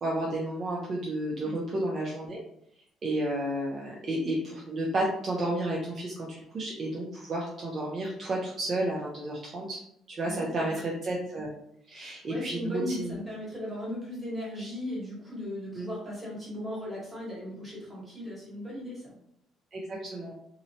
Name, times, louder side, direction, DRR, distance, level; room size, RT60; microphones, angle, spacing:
voice 1, 0.0-2.4 3.0-9.8 10.1-11.5 11.9-13.1 15.7-15.9 19.7-20.3, right 1 dB, 30° right, -3 dB, 0.4 m, -32 dB
voice 2, 10.2-10.8 12.3-19.2, left 1 dB, 5° right, -7 dB, 1.1 m, -37 dB
2.8 x 2.0 x 2.6 m, 0.73 s
cardioid pair, 150°, 0 cm